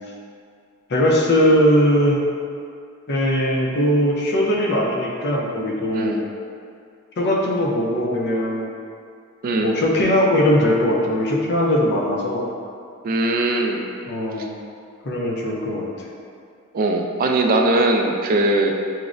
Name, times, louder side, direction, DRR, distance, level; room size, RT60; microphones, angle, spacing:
voice 1, 0.9-2.2 3.1-6.2 7.2-8.7 9.6-12.5 14.1-14.5 15.0-15.9, equal, 50° left, -2 dB, 0.5 m, -20 dB
voice 2, 9.4-9.7 13.0-13.9 16.7-18.7, right 2 dB, 45° right, 3 dB, 0.3 m, -20 dB
5.8 x 2.0 x 2.5 m, 2.3 s
head